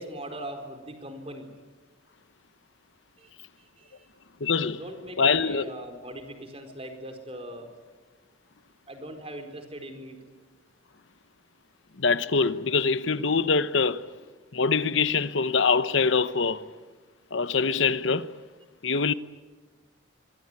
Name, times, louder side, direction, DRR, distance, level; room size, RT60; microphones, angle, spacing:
voice 1, 0.0-1.5 3.2-3.3 3.6-4.1 4.6-7.7 8.9-10.2 19.0-19.1, right 1 dB, 30° right, 4.4 m, -40 dB
voice 2, 4.4-4.8 5.2-5.7 12.0-14.1 14.5-16.6 17.3-18.3 18.8-19.1, left 5 dB, 70° left, 0.9 m, -24 dB
25.0 x 23.5 x 9.9 m
head